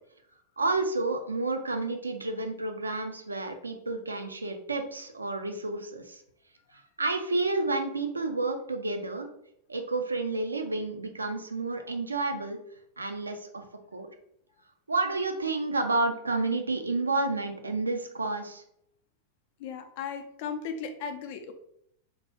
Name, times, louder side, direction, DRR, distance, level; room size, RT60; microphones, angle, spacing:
voice 1, 0.6-6.2 6.7-9.3 9.7-12.6 13.0-13.6 13.9-14.1 14.9-18.6, right 3 dB, 80° right, 5 dB, 0.4 m, -30 dB
voice 2, 19.6-21.5, left 6 dB, 50° left, 6 dB, 0.4 m, -36 dB
2.9 x 2.2 x 3.0 m, 0.72 s
figure-of-eight pair, 90°, 0 cm